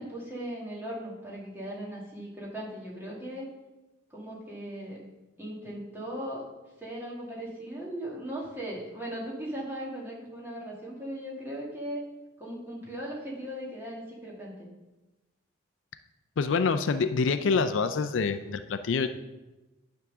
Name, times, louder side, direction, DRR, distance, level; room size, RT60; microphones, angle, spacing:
voice 1, 0.0-3.5 4.1-5.0 5.4-6.4 6.8-12.0 12.4-14.7, right 1 dB, 10° right, -4 dB, 1.7 m, -38 dB
voice 2, 16.4-19.1, left 5 dB, 65° left, 10 dB, 0.4 m, -26 dB
9.7 x 3.6 x 6.0 m, 1.1 s
head